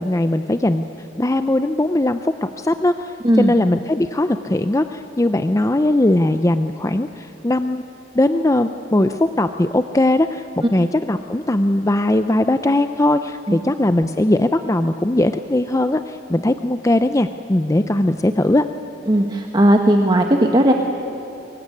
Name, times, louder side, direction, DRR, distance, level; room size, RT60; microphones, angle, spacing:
voice 1, 0.0-7.8 8.1-18.6, left 1 dB, 15° left, 9 dB, 0.6 m, -19 dB
voice 2, 19.1-20.7, right 1 dB, 25° right, 3 dB, 1.3 m, -16 dB
23.5 x 23.0 x 9.7 m, 3.0 s
head